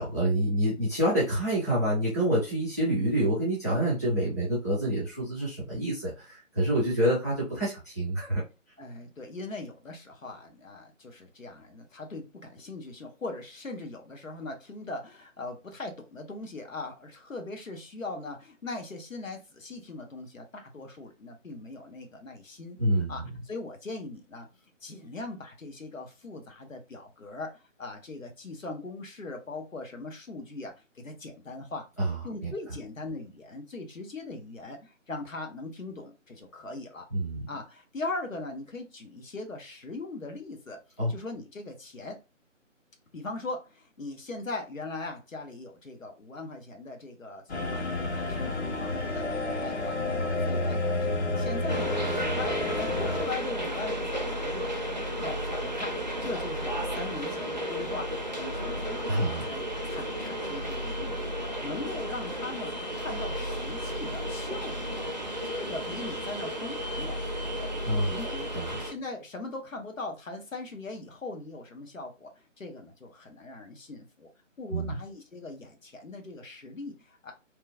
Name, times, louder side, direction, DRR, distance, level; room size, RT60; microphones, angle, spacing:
voice 1, 0.0-8.4 22.8-23.1 32.0-32.2 37.1-37.5 41.0-41.1 59.1-59.4 67.8-68.1 68.5-68.7 74.7-74.9, right 1 dB, 15° left, -9 dB, 0.6 m, -27 dB
voice 2, 8.8-24.5 24.8-31.9 32.2-37.1 37.5-40.8 41.1-42.2 43.1-65.1 65.4-68.5 68.8-74.3 74.6-77.3, left 3 dB, 80° left, 4 dB, 0.9 m, -40 dB
sound 1, 47.5-53.3, left 2 dB, 55° left, 0.7 m, -30 dB
sound 2, 51.7-68.9, equal, 35° right, 0.4 m, -33 dB
3.0 x 2.2 x 2.3 m, 0.27 s
figure-of-eight pair, 150°, 39 cm